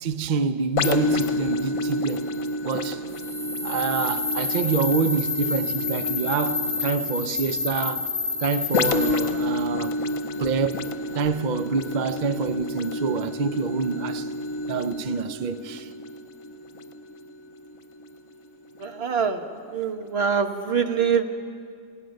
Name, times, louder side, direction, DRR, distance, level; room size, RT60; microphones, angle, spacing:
voice 1, 0.0-2.3 2.6-3.0 3.6-8.1 8.4-10.0 10.4-10.8 11.1-14.3 14.7-15.9, right 5 dB, 70° right, 0.4 m, -27 dB
sound 1, 0.8-18.3 18.8-19.0, left 2 dB, 65° left, 1.3 m, -30 dB
sound 2, 3.1-9.4, left 4 dB, 20° right, 4.2 m, -29 dB
voice 2, 18.8-19.4 19.7-21.3, right 6 dB, 45° right, 1.3 m, -24 dB
29.0 x 17.5 x 6.5 m
omnidirectional pair, 1.7 m